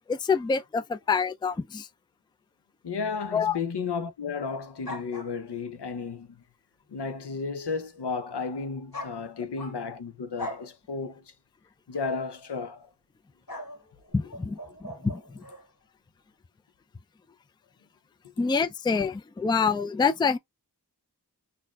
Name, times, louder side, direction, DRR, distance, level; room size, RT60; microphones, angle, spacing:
voice 1, 0.1-1.9 3.3-3.6 14.1-14.6 14.8-15.2 18.4-20.4, left 5 dB, 10° left, 0.3 m, -26 dB
voice 2, 2.8-6.4 6.9-11.2 11.9-12.9, left 5 dB, 80° left, 0.7 m, -33 dB
sound 1, 4.8-5.7 8.9-10.0 10.4-10.7 11.9-12.2 13.5-15.7, left 1 dB, 60° left, 2.3 m, -41 dB
4.0 x 2.7 x 2.3 m
wide cardioid pair, 40°, 40 cm